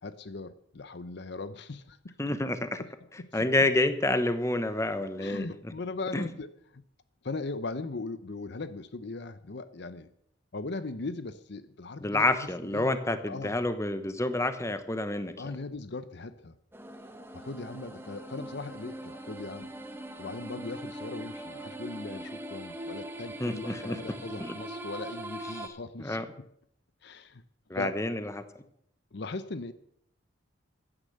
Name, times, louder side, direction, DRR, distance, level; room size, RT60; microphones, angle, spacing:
voice 1, 0.0-2.1 2.8-2.9 3.2-3.5 5.2-6.8 7.2-10.1 10.5-12.3 12.6-12.9 13.3-13.6 15.4-16.5 17.3-19.7 20.2-26.2 27.0-27.4 27.7-27.9 29.1-29.7, left 3 dB, 60° left, 13 dB, 0.7 m, -39 dB
voice 2, 2.2-2.8 3.1-5.5 6.1-6.3 12.0-15.6 23.4-24.0 24.4-24.5 25.5-25.7 26.0-26.3 27.7-28.4, left 2 dB, 15° left, 10 dB, 0.9 m, -29 dB
sound 1, 16.7-25.7, right 1 dB, 10° right, 1.1 m, -41 dB
15.0 x 10.0 x 6.6 m, 0.71 s
head